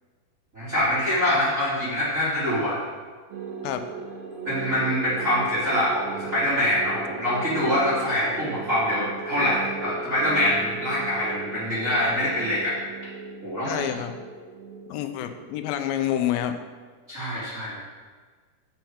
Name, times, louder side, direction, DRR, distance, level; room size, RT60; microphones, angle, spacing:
voice 1, 0.5-2.8 4.4-12.8 13.4-13.8 17.1-17.8, left 1 dB, 25° right, -11 dB, 2.5 m, -24 dB
sound 1, 3.3-16.1, right 5 dB, 85° right, 3.4 m, -37 dB
voice 2, 13.7-14.1 14.9-16.6, left 11 dB, 85° left, 8 dB, 2.4 m, -28 dB
8.0 x 7.9 x 4.6 m, 1.5 s
omnidirectional pair, 4.1 m